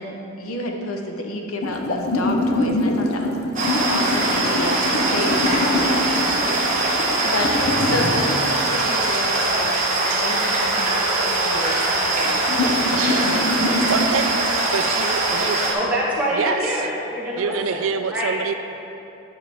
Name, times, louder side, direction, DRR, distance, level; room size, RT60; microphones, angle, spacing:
voice 1, 0.0-6.5 7.2-13.7, left 1 dB, 80° left, 2 dB, 0.8 m, -30 dB
sound 1, 1.6-8.3 11.6-11.7 12.5-14.1, left 2 dB, 50° left, 0.6 m, -24 dB
sound 2, 3.6-15.7, right 2 dB, 35° right, 1.2 m, -22 dB
voice 2, 13.9-15.6 16.3-16.8 17.4-18.5, right 6 dB, 65° right, 8 dB, 0.4 m, -26 dB
voice 3, 15.7-18.3, equal, 5° right, -8 dB, 1.5 m, -25 dB
9.5 x 5.8 x 3.5 m, 2.8 s
head